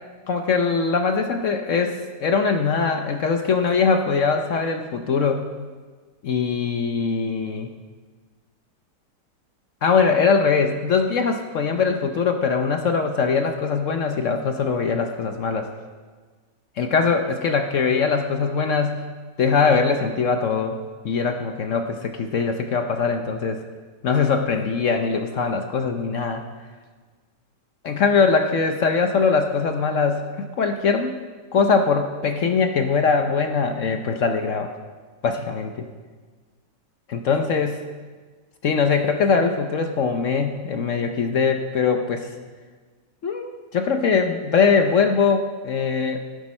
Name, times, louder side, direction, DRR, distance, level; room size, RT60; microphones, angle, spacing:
voice 1, 0.3-5.5 6.2-7.7 9.8-15.7 16.8-19.0 19.4-20.8 21.0-23.6 24.0-26.4 27.9-31.1 31.5-34.7 35.2-35.9 37.1-37.8 38.6-42.3 43.2-46.2, left 5 dB, 60° left, 6 dB, 0.9 m, -22 dB
13.0 x 11.5 x 4.3 m, 1.4 s
omnidirectional pair, 1.9 m